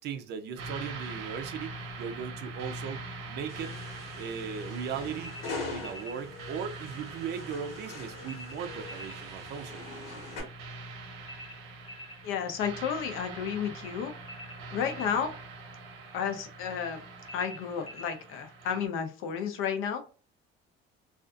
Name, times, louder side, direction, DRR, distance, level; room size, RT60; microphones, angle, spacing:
voice 1, 0.0-3.8 4.2-5.4 5.7-9.8, right 7 dB, 55° right, 0.4 m, -38 dB
sound 1, 0.6-18.9, right 3 dB, 85° right, 0.8 m, -43 dB
sound 2, 3.5-10.4, left 3 dB, 90° left, 1.2 m, -43 dB
sound 3, 5.2-6.2 8.2-9.2 11.2-12.2 14.2-15.2 17.2-18.2, left 1 dB, 25° left, 0.6 m, -46 dB
voice 2, 12.2-14.1 14.7-15.3 16.1-17.0 17.3-20.0, left 7 dB, 75° left, 0.6 m, -32 dB
2.5 x 2.4 x 2.3 m
cardioid pair, 155°, 21 cm